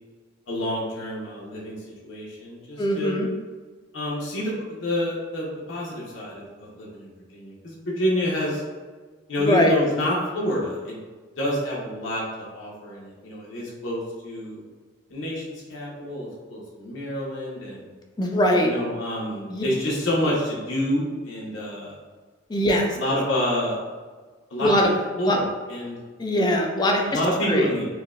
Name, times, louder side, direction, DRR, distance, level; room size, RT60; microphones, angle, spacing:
voice 1, 0.5-1.8 2.0-3.1 3.9-8.6 9.3-11.0 11.4-14.6 15.1-17.9 18.6-22.0 22.7-23.8 24.5-25.4 25.7-26.0 27.1-27.9, left 1 dB, 80° left, -5 dB, 0.7 m, -28 dB
voice 2, 2.8-3.3 9.4-9.7 18.2-18.7 19.5-19.6 22.5-23.0 24.6-24.9 25.3-25.4 26.2-27.1 27.5-27.7, equal, 25° left, 2 dB, 0.3 m, -21 dB
4.5 x 2.1 x 2.3 m, 1.4 s
head